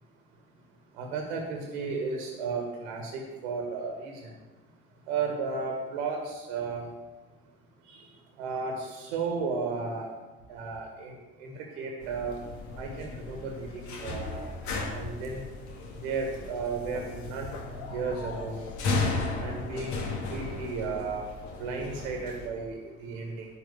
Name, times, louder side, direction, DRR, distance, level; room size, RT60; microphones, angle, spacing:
voice 1, 1.0-4.3 5.1-6.9 7.9-8.0 8.4-10.1 10.5-12.4 12.8-14.5 14.9-15.4 16.0-17.6 17.9-18.6 19.4-21.2 21.6-23.5, right 4 dB, 70° right, 2 dB, 1.8 m, -34 dB
sound 1, 12.0-22.5, left 3 dB, 55° left, 2.0 m, -35 dB
10.5 x 5.9 x 7.0 m, 1.2 s
figure-of-eight pair, 55°, 34 cm